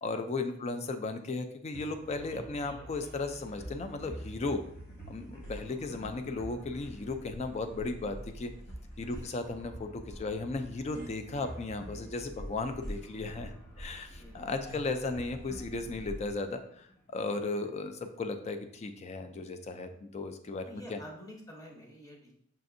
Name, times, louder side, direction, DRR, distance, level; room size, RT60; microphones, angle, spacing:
voice 1, 0.0-4.6 5.1-8.5 9.0-21.0, left 3 dB, 30° left, 8 dB, 0.3 m, -36 dB
sound 1, 1.7-17.4, equal, 50° left, 1.3 m, -46 dB
voice 2, 14.2-14.5 17.6-17.7 19.8-19.9 20.6-22.3, equal, 15° left, -1 dB, 0.7 m, -49 dB
5.6 x 2.5 x 2.6 m, 0.66 s
head